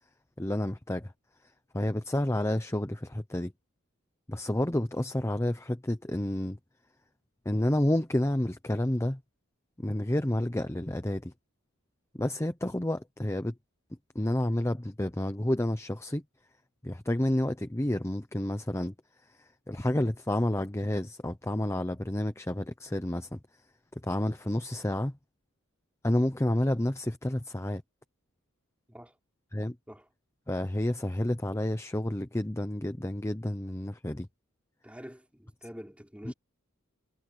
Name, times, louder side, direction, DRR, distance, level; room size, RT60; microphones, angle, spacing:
voice 1, 0.4-1.1 1.7-3.5 4.3-6.6 7.4-9.2 9.8-11.3 12.1-13.5 14.1-16.2 16.8-18.9 19.3-23.4 24.0-25.1 26.0-27.8 29.5-29.8 30.5-34.3 36.3-36.4, left 1 dB, 10° left, 0.8 m, -30 dB
voice 2, 34.8-36.3, equal, 5° right, 5.4 m, -46 dB
head